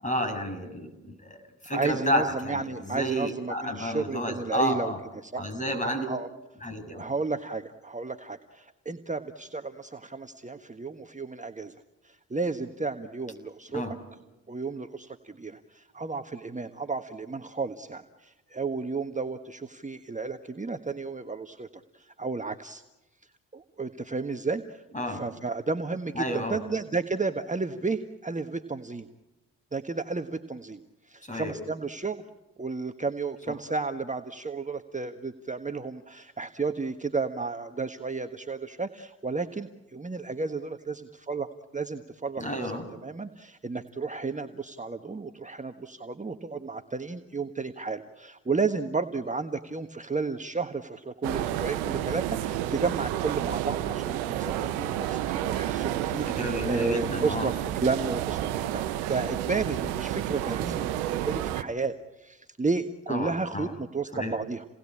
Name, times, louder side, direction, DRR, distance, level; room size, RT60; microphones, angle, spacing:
voice 1, 0.0-1.4 1.6-5.0 5.4-6.1 6.6-7.0 13.7-13.9 24.9-25.2 26.1-26.6 31.3-31.5 42.4-42.8 56.4-57.5 63.1-63.7 64.1-64.3, equal, 20° left, 8 dB, 6.6 m, -31 dB
voice 2, 1.6-4.9 5.2-5.4 5.8-6.3 7.0-11.7 12.0-13.8 14.5-22.8 23.5-29.1 29.7-30.8 31.1-32.2 32.6-41.5 41.7-42.7 43.0-64.7, right 4 dB, 20° right, 6 dB, 1.5 m, -32 dB
sound 1, 51.2-61.6, right 12 dB, 85° right, 0.9 m, -30 dB
29.5 x 19.5 x 8.7 m, 1.0 s
hypercardioid pair, 45°, 35 cm